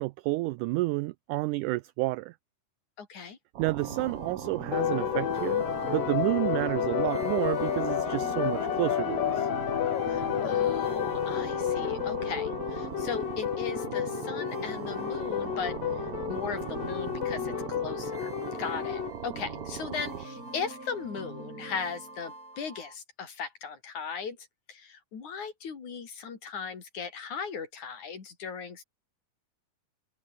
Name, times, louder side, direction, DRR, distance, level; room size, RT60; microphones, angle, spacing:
voice 1, 0.0-2.4 3.6-9.5, right 20 dB, 85° right, 1.8 m, -30 dB
voice 2, 3.0-3.4 10.1-17.5 17.8-18.3 18.6-24.4 24.7-28.8, left 6 dB, 55° left, 4.8 m, -38 dB
sound 1, 3.5-20.3, right 11 dB, 65° right, 1.5 m, -40 dB
sound 2, 3.8-23.0, right 2 dB, 25° right, 7.7 m, -43 dB
sound 3, 4.7-19.1, left 12 dB, 75° left, 3.2 m, -31 dB
omnidirectional pair, 4.0 m